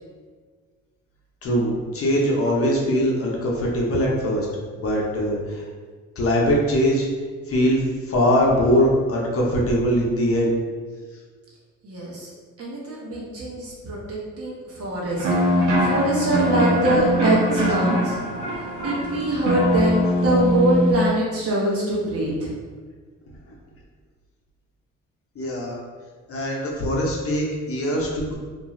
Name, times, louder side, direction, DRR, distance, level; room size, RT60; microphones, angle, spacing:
voice 1, 1.4-4.5 4.8-5.4 6.2-7.1 7.5-7.8 8.1-10.5 25.4-25.8 26.3-28.3, equal, 50° left, -2 dB, 0.7 m, -21 dB
voice 2, 11.8-12.3 12.6-18.2 18.5-22.5, right 1 dB, 50° right, -4 dB, 1.0 m, -24 dB
sound 1, 15.2-20.9, equal, 80° right, 0.7 m, -22 dB
2.5 x 2.3 x 3.0 m, 1.5 s
cardioid pair, 90°, 30 cm